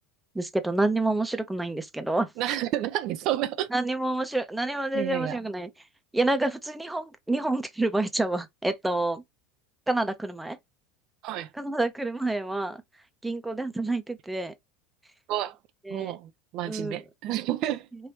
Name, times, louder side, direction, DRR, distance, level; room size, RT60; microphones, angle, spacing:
voice 1, 0.3-2.3 3.7-5.7 6.1-9.2 9.9-10.6 11.5-12.8 13.2-14.5 15.9-16.1 16.6-17.0, right 2 dB, 5° right, 0.7 m, -28 dB
voice 2, 2.4-3.7 4.9-5.4 11.2-11.5 15.3-15.6 15.9-17.9, right 13 dB, 55° right, 0.4 m, -30 dB
3.4 x 2.6 x 2.9 m
hypercardioid pair, 90°, 0 cm